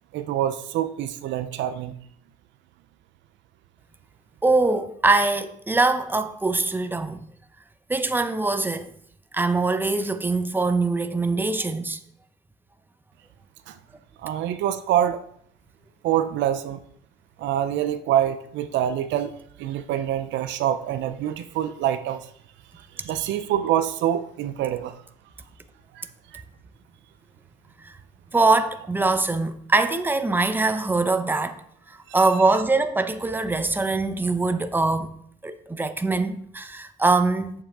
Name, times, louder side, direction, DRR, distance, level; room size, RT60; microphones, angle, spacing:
voice 1, 0.1-1.9 13.7-13.8 14.2-15.2 16.0-16.8 17.4-19.3 19.6-22.3 23.0-25.0 25.9-26.0 26.3-26.4, right 11 dB, 65° right, 0.7 m, -25 dB
voice 2, 4.4-7.2 7.9-8.9 9.3-12.0 27.8-27.9 28.3-31.6 31.9-35.1 35.4-37.5, right 3 dB, 10° right, 0.8 m, -23 dB
8.7 x 7.3 x 3.6 m
hypercardioid pair, 70°, 20 cm